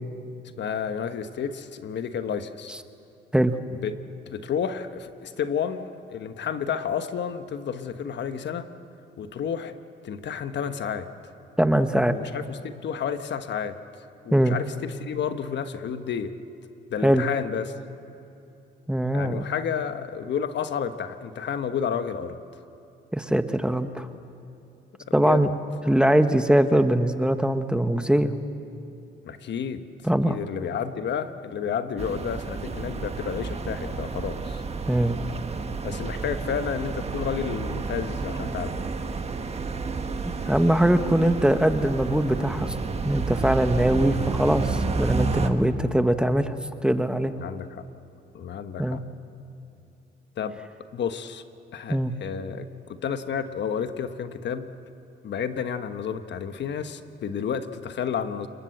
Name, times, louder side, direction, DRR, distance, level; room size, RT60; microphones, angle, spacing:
voice 1, 0.6-2.7 3.8-3.9 4.3-8.7 9.2-9.7 10.0-11.1 12.1-13.8 14.2-16.3 16.9-17.7 19.1-22.4 25.2-25.5 29.2-29.8 30.3-34.6 35.8-38.8 47.4-47.8 48.3-49.0 50.4-50.6 50.9-51.5 51.7-54.7 55.2-58.5, left 7 dB, 65° left, 9 dB, 1.2 m, -31 dB
voice 2, 11.6-12.2 14.3-14.6 17.0-17.2 18.9-19.4 23.1-24.1 25.1-25.5 25.9-28.3 30.0-30.4 34.9-35.2 40.5-42.7 43.0-46.5 46.8-47.3 48.8-49.0 51.9-52.1, right 1 dB, 5° right, 9 dB, 1.1 m, -22 dB
sound 1, 32.0-45.5, right 4 dB, 30° right, 1.6 m, -30 dB
29.5 x 20.5 x 7.9 m, 2.8 s
cardioid pair, 90°, 20 cm